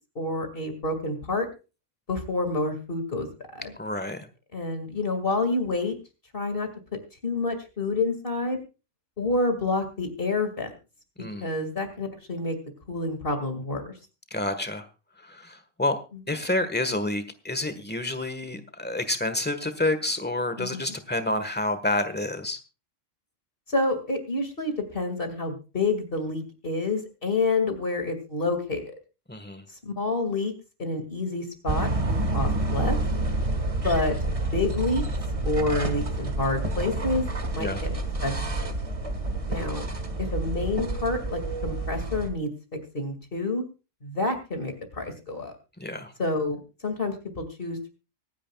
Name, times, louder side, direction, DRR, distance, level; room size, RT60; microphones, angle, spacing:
voice 1, 0.2-1.5 2.1-3.3 3.5-3.7 4.5-5.9 6.3-6.7 7.2-8.6 9.2-10.7 11.4-12.6 12.9-13.9 20.6-21.0 23.7-28.8 29.8-30.5 30.8-33.0 33.8-34.2 34.5-35.0 35.4-37.3 37.5-37.9 38.2-38.7 39.5-39.8 40.2-42.5 42.9-43.6 44.0-45.5 46.2-47.9, left 2 dB, 45° left, 6 dB, 2.6 m, -28 dB
voice 2, 3.8-4.3 11.2-11.5 14.3-14.9 15.2-16.0 16.3-22.6 29.3-29.6 37.6-37.8 45.8-46.1, left 2 dB, 10° left, 10 dB, 1.4 m, -29 dB
sound 1, 31.7-42.3, right 2 dB, 30° right, 1.6 m, -28 dB
25.0 x 10.0 x 2.4 m, 0.31 s
omnidirectional pair, 1.3 m